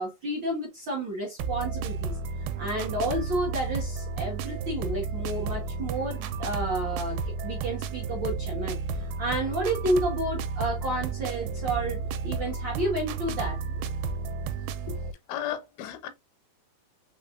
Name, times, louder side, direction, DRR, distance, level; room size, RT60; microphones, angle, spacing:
voice 1, 0.0-2.2 2.6-8.8 9.2-13.6, right 1 dB, 60° right, 1.2 m, -31 dB
sound 1, 1.4-15.1, right 4 dB, 80° right, 2.4 m, -32 dB
voice 2, 15.3-16.1, left 10 dB, 80° left, 2.5 m, -34 dB
5.6 x 3.4 x 2.5 m
omnidirectional pair, 4.6 m